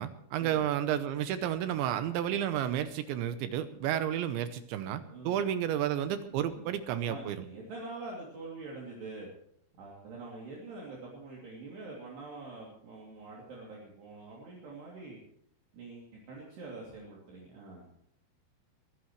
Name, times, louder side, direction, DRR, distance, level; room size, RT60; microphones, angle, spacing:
voice 1, 0.0-7.5, right 10 dB, 75° right, 10 dB, 2.9 m, -31 dB
voice 2, 5.1-5.5 6.5-9.3 9.7-15.2 15.7-17.9, right 3 dB, 55° right, -3 dB, 4.8 m, -45 dB
24.0 x 15.5 x 3.2 m, 0.67 s
omnidirectional pair, 5.9 m